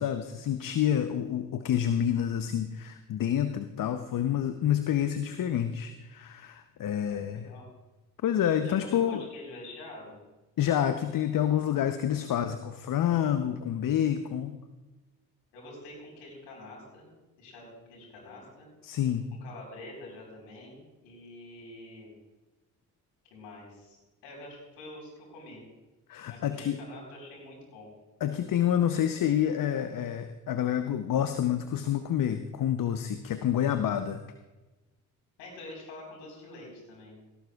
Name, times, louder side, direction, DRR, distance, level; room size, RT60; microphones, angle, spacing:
voice 1, 0.0-7.5 8.2-9.2 10.6-14.6 18.8-19.3 26.1-26.8 28.2-34.2, left 10 dB, 50° left, 9 dB, 0.9 m, -28 dB
voice 2, 7.1-7.7 8.6-10.2 15.5-17.1 17.4-18.7 19.4-22.1 23.3-25.7 26.3-27.9 35.4-37.4, left 2 dB, 75° left, -2 dB, 4.6 m, -46 dB
17.5 x 12.5 x 2.4 m, 1.1 s
hypercardioid pair, 45°, 44 cm